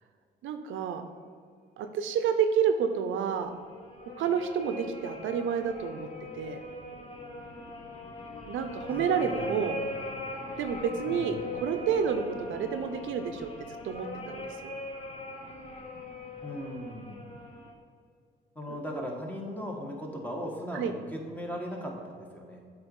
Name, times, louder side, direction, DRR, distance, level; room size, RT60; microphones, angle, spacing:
voice 1, 0.4-1.0 1.8-3.5 4.2-6.1 6.3-6.6 8.4-9.8 10.6-13.5 13.8-14.8 20.7-20.9, right 7 dB, 75° right, 8 dB, 0.6 m, -29 dB
sound 1, 3.3-17.7, left 2 dB, 30° left, 1.1 m, -40 dB
voice 2, 8.9-10.0 11.0-11.4 16.4-17.2 18.5-22.6, equal, 10° left, -1 dB, 1.5 m, -38 dB
8.0 x 4.0 x 5.4 m, 2.2 s
cardioid pair, 90°, 20 cm